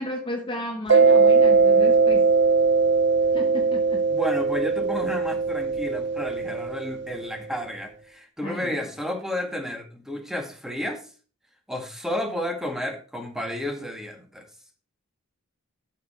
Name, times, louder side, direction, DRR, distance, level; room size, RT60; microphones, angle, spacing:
voice 1, 0.0-2.3 3.3-4.1 8.4-8.8, left 1 dB, 25° left, 1.0 m, -34 dB
Mallet percussion, 0.9-7.3, right 4 dB, 55° right, 0.9 m, -20 dB
voice 2, 4.1-11.0 11.7-14.5, left 1 dB, ahead, 1.9 m, -31 dB
12.0 x 6.8 x 4.4 m
head